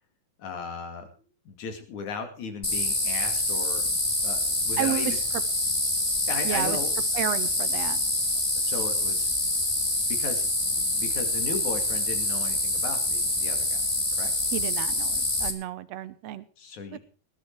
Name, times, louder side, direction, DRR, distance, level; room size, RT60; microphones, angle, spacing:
voice 1, 0.4-1.1 1.5-4.0 4.2-5.2 6.3-6.9 8.6-9.3 10.1-13.8 14.2-14.3 16.6-17.0, left 4 dB, 60° left, 6 dB, 3.7 m, -36 dB
sound 1, 2.6-15.5, left 1 dB, 15° left, 1.3 m, -26 dB
voice 2, 4.8-5.1 6.4-6.8 7.1-8.0 14.5-16.5 16.9-17.0, right 12 dB, 70° right, 14 dB, 1.6 m, -31 dB
20.0 x 11.5 x 4.6 m, 0.39 s
omnidirectional pair, 4.0 m